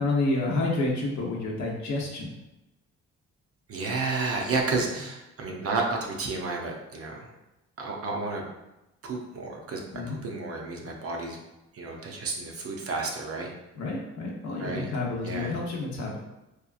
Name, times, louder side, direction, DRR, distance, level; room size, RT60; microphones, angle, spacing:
voice 1, 0.0-2.3 9.9-10.2 13.7-16.2, left 2 dB, 70° left, -2 dB, 0.8 m, -29 dB
voice 2, 3.7-7.3 7.8-8.5 9.0-9.8 10.2-11.4 11.7-13.5 14.6-14.9 15.2-15.5, right 3 dB, 50° right, 0 dB, 0.6 m, -31 dB
2.8 x 2.3 x 2.3 m, 0.95 s
cardioid pair, 90°, 30 cm